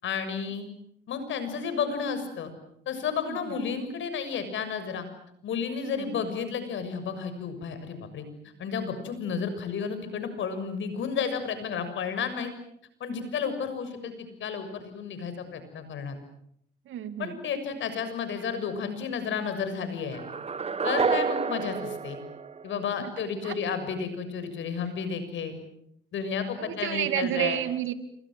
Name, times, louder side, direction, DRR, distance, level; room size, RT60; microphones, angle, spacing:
voice 1, 0.0-0.7 1.1-2.5 2.8-5.1 5.4-8.2 8.6-12.5 13.0-16.2 17.2-20.2 20.8-22.2 22.6-25.6 26.1-27.6, left 6 dB, 70° left, 10 dB, 6.9 m, -32 dB
voice 2, 5.9-6.2 13.1-13.3 16.9-17.4 23.0-23.1 23.4-23.5 26.6-27.9, right 12 dB, 80° right, 10 dB, 2.5 m, -31 dB
sound 1, 20.1-23.2, right 5 dB, 30° right, 1.1 m, -29 dB
28.5 x 24.5 x 7.8 m, 0.74 s
cardioid pair, 90°, 20 cm